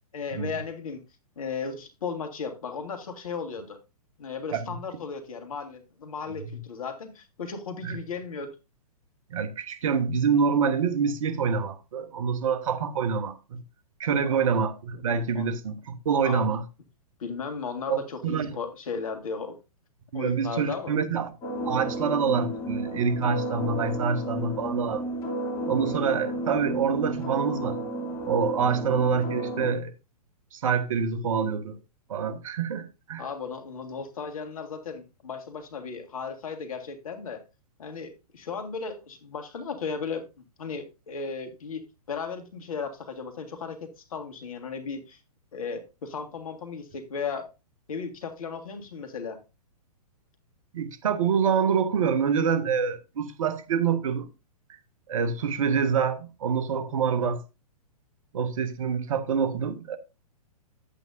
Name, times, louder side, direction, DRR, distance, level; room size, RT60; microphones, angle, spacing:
voice 1, 0.1-1.0 1.4-3.8 4.2-8.6 14.3-14.4 15.4-15.5 16.2-16.5 17.2-19.6 20.1-20.9 33.2-37.4 37.8-40.2 40.6-41.8 42.1-45.2 45.5-47.5 47.9-49.4, left 5 dB, 60° left, 1.8 m, -35 dB
voice 2, 9.3-13.6 14.0-16.6 17.9-18.6 20.1-21.3 21.6-25.1 25.7-27.8 28.2-29.9 30.5-31.8 32.1-33.3 50.7-54.3 55.1-57.4 58.3-60.0, right 6 dB, 55° right, 1.1 m, -26 dB
sound 1, 21.4-29.7, right 1 dB, 20° left, 2.8 m, -32 dB
10.5 x 8.2 x 2.6 m
figure-of-eight pair, 120°, 20 cm